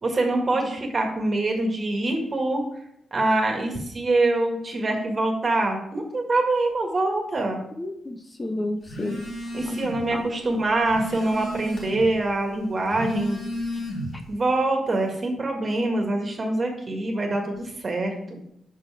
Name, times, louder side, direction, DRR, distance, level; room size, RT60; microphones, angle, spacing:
voice 1, 0.0-2.6 3.1-7.6 9.1-9.2 9.5-13.4 14.3-18.4, right 2 dB, 40° right, 2 dB, 1.7 m, -24 dB
voice 2, 7.8-9.2 9.7-9.8 10.1-10.2, left 1 dB, 20° left, 6 dB, 0.7 m, -31 dB
Telephone, 8.9-10.1 10.5-12.1 12.8-14.3, left 1 dB, 65° left, 2.2 m, -32 dB
5.7 x 5.5 x 4.8 m, 0.74 s
cardioid pair, 85°, 0 cm